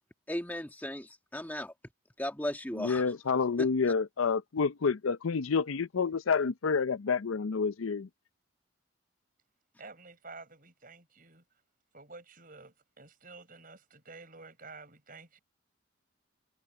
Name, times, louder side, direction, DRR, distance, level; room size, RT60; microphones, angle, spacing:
voice 1, 0.3-1.7 2.2-3.0, left 1 dB, 10° left, 1.8 m, -36 dB
voice 2, 2.7-8.1, left 5 dB, 85° left, 0.5 m, -29 dB
voice 3, 9.8-11.4 11.9-15.4, right 3 dB, 40° right, 6.5 m, -50 dB
head